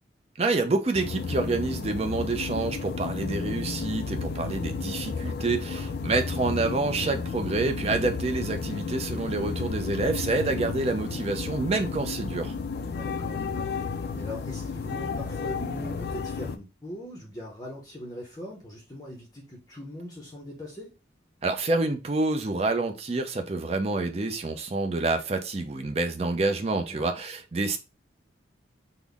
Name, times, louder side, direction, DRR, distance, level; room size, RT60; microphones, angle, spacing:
voice 1, 0.4-12.5 21.4-27.8, right 3 dB, 30° right, 0.4 m, -28 dB
sound 1, 0.9-16.6, left 4 dB, 55° left, 0.3 m, -32 dB
voice 2, 12.9-20.9 26.9-27.1, left 1 dB, 20° left, 0.6 m, -41 dB
3.8 x 2.0 x 3.3 m
head